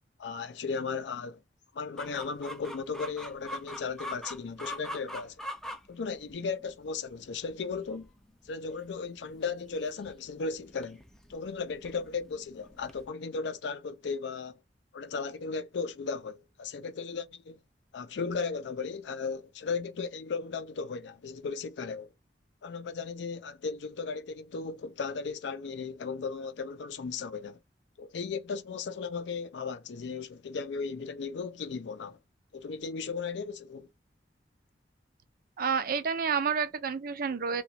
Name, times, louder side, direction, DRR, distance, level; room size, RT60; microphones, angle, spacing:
voice 1, 0.2-1.4 1.7-5.4 5.9-8.1 8.4-11.0 11.3-14.6 14.9-17.6 17.9-22.1 22.6-27.6 28.0-32.2 32.5-33.9, left 5 dB, 75° left, 0.4 m, -36 dB
Chicken rooster, 2.0-13.1, equal, 5° left, 0.4 m, -44 dB
voice 2, 35.6-37.6, right 6 dB, 55° right, 0.4 m, -29 dB
2.8 x 2.3 x 4.2 m
head